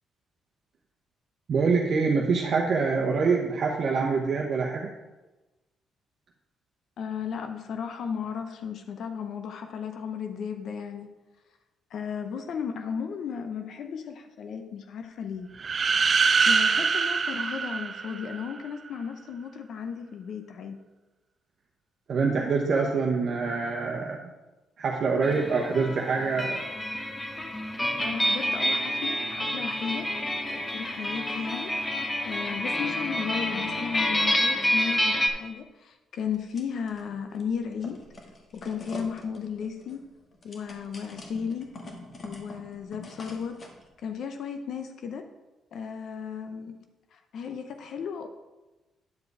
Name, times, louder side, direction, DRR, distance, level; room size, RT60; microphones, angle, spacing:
voice 1, 1.5-4.9 22.1-24.3 24.8-26.6, right 4 dB, 55° right, -1 dB, 1.0 m, -25 dB
voice 2, 7.0-11.1 11.9-15.5 16.5-20.8 28.0-30.1 30.5-38.0 38.5-40.0 40.4-41.7 42.2-43.6 44.0-45.3 45.7-46.7 47.1-48.3, left 6 dB, 65° left, 7 dB, 0.6 m, -35 dB
sound 1, 15.6-18.5, right 5 dB, 40° right, 0.3 m, -24 dB
sound 2, 25.2-35.3, left 1 dB, 15° left, 1.1 m, -28 dB
sound 3, 36.3-37.0 37.4-43.8, left 2 dB, 40° left, 1.5 m, -44 dB
9.5 x 5.0 x 4.8 m, 1.1 s
cardioid pair, 90°, 0 cm